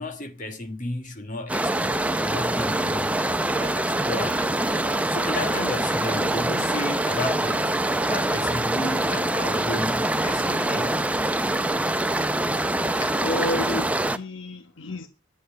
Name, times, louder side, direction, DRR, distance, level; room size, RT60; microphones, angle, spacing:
voice 1, 0.0-3.2 3.6-7.7 8.1-11.0, left 2 dB, 40° left, 1.6 m, -33 dB
sound 1, 1.5-14.2, right 1 dB, 5° right, 0.5 m, -24 dB
voice 2, 13.0-15.1, left 1 dB, 65° left, 1.2 m, -31 dB
11.0 x 8.0 x 8.0 m
head